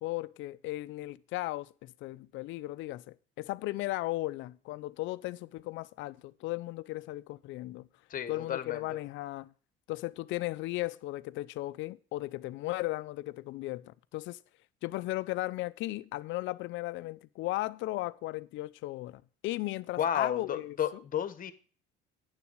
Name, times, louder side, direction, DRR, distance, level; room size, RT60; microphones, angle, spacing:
voice 1, 0.0-7.9 8.3-9.5 9.9-14.4 14.8-20.8, left 18 dB, 70° left, 0.6 m, -36 dB
voice 2, 8.1-8.9 20.0-21.5, left 9 dB, 45° left, 1.3 m, -32 dB
9.9 x 7.0 x 6.2 m
cardioid pair, 110°, 20 cm